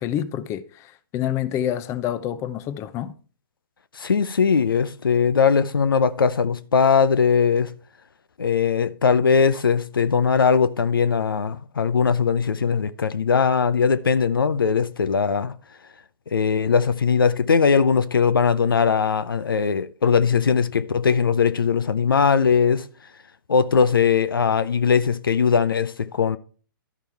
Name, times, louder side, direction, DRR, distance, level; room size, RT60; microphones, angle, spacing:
voice 1, 0.0-3.1, left 11 dB, 25° left, 0.6 m, -27 dB
voice 2, 3.9-7.7 8.4-15.6 16.3-22.9 23.5-26.4, left 6 dB, 85° left, 0.6 m, -20 dB
12.0 x 5.3 x 4.5 m
hypercardioid pair, 130°, 11 cm